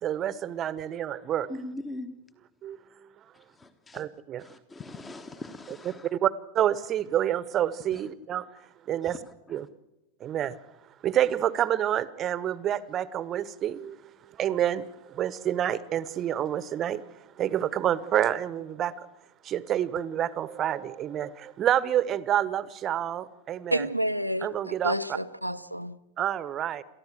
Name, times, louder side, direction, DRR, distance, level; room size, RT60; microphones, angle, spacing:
voice 1, 0.0-1.5 2.6-2.8 3.9-4.4 5.7-8.4 8.9-9.2 9.5-9.7 10.2-10.6 11.0-17.0 17.4-18.9 19.4-23.9 24.4-25.2 26.2-26.8, right 11 dB, 30° right, 1.0 m, -28 dB
voice 2, 1.5-2.1 3.3-4.0 4.4-6.1 7.9-8.0 9.0-9.2 9.5-9.6, left 2 dB, 15° left, 1.2 m, -41 dB
voice 3, 23.7-26.0, equal, 90° right, 0.7 m, -30 dB
29.0 x 14.0 x 8.0 m
figure-of-eight pair, 90°, 0 cm